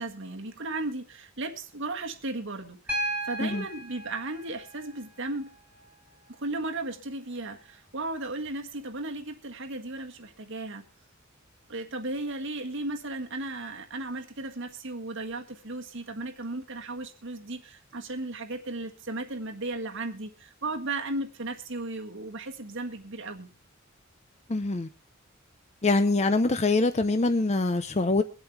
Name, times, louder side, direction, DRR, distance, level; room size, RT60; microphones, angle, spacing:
voice 1, 0.0-5.5 6.4-10.8 11.7-23.5, right 2 dB, 60° right, 1.7 m, -35 dB
Piano, 2.9-6.9 8.5-8.6, equal, 5° right, 3.5 m, -37 dB
voice 2, 24.5-24.9 25.8-28.2, left 2 dB, 30° left, 0.7 m, -24 dB
23.5 x 8.0 x 3.4 m
head